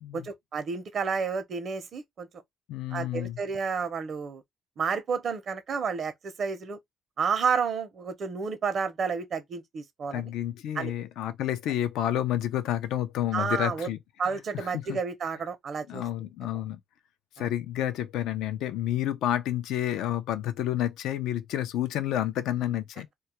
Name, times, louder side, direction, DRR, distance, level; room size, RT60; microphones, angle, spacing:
voice 1, 0.1-2.3 2.9-4.4 4.8-6.8 7.2-10.2 10.8-10.9 13.3-13.9 14.2-16.0 17.4-17.5, right 5 dB, 60° right, 0.6 m, -30 dB
voice 2, 2.7-3.4 10.1-14.0 14.5-15.0 15.9-16.8 17.4-23.1, left 12 dB, 90° left, 0.3 m, -30 dB
2.2 x 2.1 x 2.7 m
cardioid pair, 90°, 0 cm